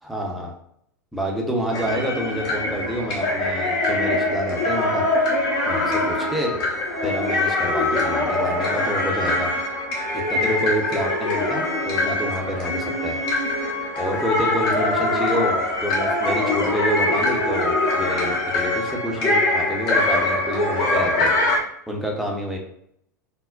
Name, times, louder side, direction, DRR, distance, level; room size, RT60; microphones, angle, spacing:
voice 1, 0.0-0.5 1.1-5.1 5.7-6.6 7.0-9.5 10.1-13.2 14.0-21.3 21.9-22.6, equal, ahead, -1 dB, 0.7 m, -28 dB
sound 1, 1.7-21.6, left 2 dB, 50° left, 0.8 m, -23 dB
3.7 x 2.0 x 2.3 m, 0.71 s
figure-of-eight pair, 85°, 10 cm